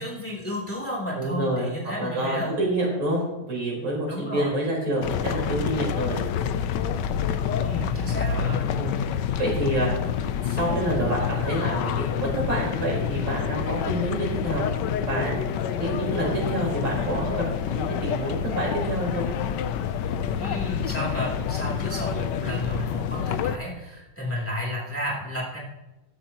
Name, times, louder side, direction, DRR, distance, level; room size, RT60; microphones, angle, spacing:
voice 1, 0.0-2.5 4.1-4.5 7.6-8.7 20.4-25.6, equal, 5° left, -4 dB, 3.0 m, -32 dB
voice 2, 1.2-1.7 2.0-6.2 8.8-9.0 9.4-9.9 10.2-14.6 15.1-19.3, right 1 dB, 90° right, -4 dB, 5.4 m, -28 dB
sound 1, 5.0-23.6, left 8 dB, 70° left, 1.2 m, -28 dB
13.0 x 13.0 x 3.0 m, 1.0 s
omnidirectional pair, 2.2 m